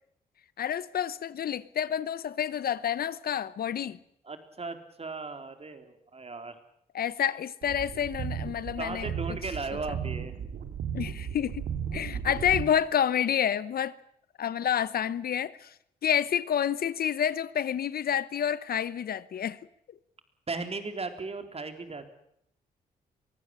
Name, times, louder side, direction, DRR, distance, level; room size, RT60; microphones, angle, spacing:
voice 1, 0.6-4.0 6.9-9.1 10.9-11.6 11.9-14.0 14.4-15.7 16.0-19.6, left 9 dB, 65° left, 1.0 m, -29 dB
voice 2, 4.2-6.6 8.8-10.3 12.0-12.1 20.5-22.1, right 3 dB, 40° right, 3.9 m, -37 dB
sound 1, 7.6-12.7, right 8 dB, 80° right, 2.6 m, -35 dB
23.5 x 15.5 x 9.9 m
cardioid pair, 60°, 17 cm